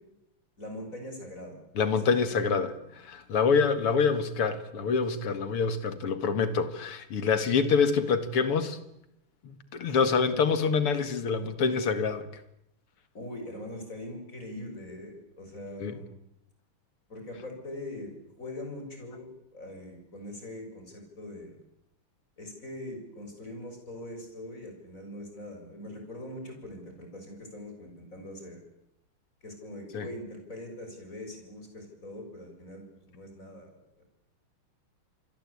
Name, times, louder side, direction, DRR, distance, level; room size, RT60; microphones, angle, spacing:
voice 1, 0.6-1.6 2.0-2.8 7.5-7.6 13.1-16.1 17.1-18.1 18.4-21.6 22.4-28.6 29.4-33.7 34.0-34.1, left 1 dB, 35° left, 4 dB, 7.2 m, -42 dB
voice 2, 1.8-2.7 3.0-8.8 9.4-12.3 15.8-16.0 29.9-30.1, left 5 dB, 80° left, 11 dB, 2.8 m, -26 dB
28.0 x 22.0 x 8.6 m, 0.80 s
omnidirectional pair, 2.4 m